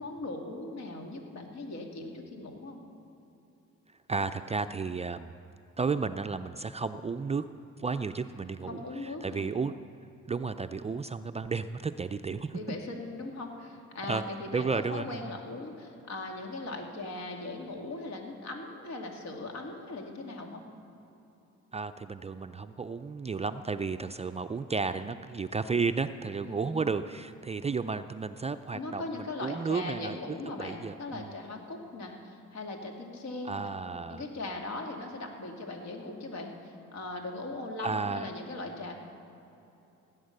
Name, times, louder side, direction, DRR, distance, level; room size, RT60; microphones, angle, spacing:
voice 1, 0.0-2.8 8.7-9.5 12.5-20.6 26.4-26.9 28.7-33.7 34.1-38.9, left 2 dB, 65° left, 1 dB, 2.5 m, -39 dB
voice 2, 4.1-5.3 5.8-7.4 7.8-9.8 10.3-12.6 14.1-14.2 14.5-15.3 21.7-30.2 30.6-31.3 33.5-34.2 37.8-38.3, right 4 dB, 20° right, 9 dB, 0.4 m, -33 dB
16.5 x 8.9 x 6.6 m, 2.9 s
cardioid pair, 90°, 30 cm